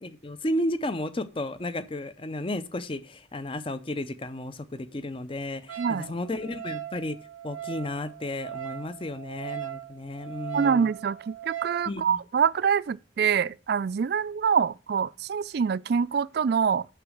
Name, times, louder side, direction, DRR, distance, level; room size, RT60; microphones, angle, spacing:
voice 1, 0.0-7.2 7.4-10.9 11.9-12.2, left 1 dB, 25° left, 0.5 m, -33 dB
Wind instrument woodwind instrument, 5.7-11.8, right 12 dB, 90° right, 0.9 m, -39 dB
voice 2, 5.8-6.1 10.5-16.9, right 6 dB, 50° right, 0.3 m, -25 dB
6.7 x 6.0 x 6.2 m
head